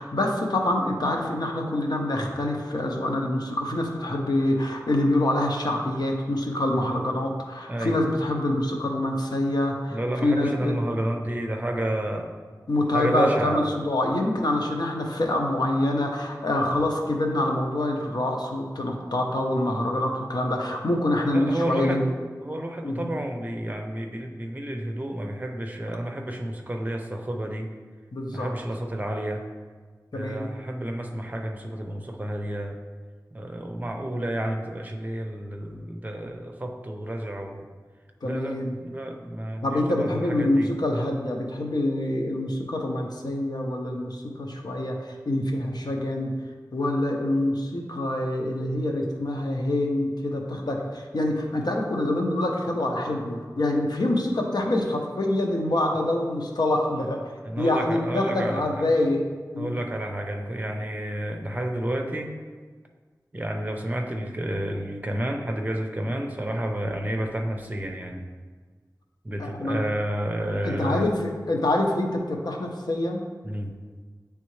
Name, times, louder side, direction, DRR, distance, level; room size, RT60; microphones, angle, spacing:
voice 1, 0.0-10.7 12.7-22.1 22.8-23.1 28.1-28.5 30.1-30.5 38.2-38.7 39.6-46.3 46.7-59.2 59.5-59.8 69.4-69.8 70.6-73.2, left 1 dB, 75° left, 1 dB, 0.8 m, -26 dB
voice 2, 7.7-8.0 9.9-12.3 12.9-13.7 21.3-22.0 22.4-27.7 28.3-29.4 30.1-32.8 33.3-37.7 38.2-40.7 57.4-58.8 59.6-62.3 63.3-68.2 69.2-71.1 73.4-73.7, right 1 dB, 25° right, 3 dB, 0.7 m, -30 dB
9.0 x 3.4 x 3.2 m, 1.5 s
wide cardioid pair, 65°, 7 cm